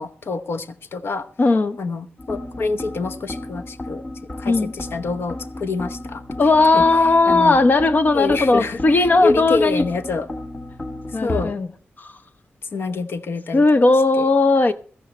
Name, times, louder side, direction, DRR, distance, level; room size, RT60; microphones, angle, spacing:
voice 1, 0.0-1.3 1.8-4.0 4.4-6.2 6.7-6.8 7.3-7.6 8.1-10.3 11.1-11.5 12.7-13.6 14.2-14.3, left 3 dB, 70° left, 0.9 m, -26 dB
voice 2, 1.4-1.8 4.5-4.7 6.4-9.8 11.1-11.7 12.0-12.1 13.5-14.7, left 3 dB, 45° left, 0.7 m, -17 dB
sound 1, 2.2-11.5, left 1 dB, 30° left, 1.4 m, -33 dB
17.0 x 13.5 x 3.2 m
wide cardioid pair, 110°, 4 cm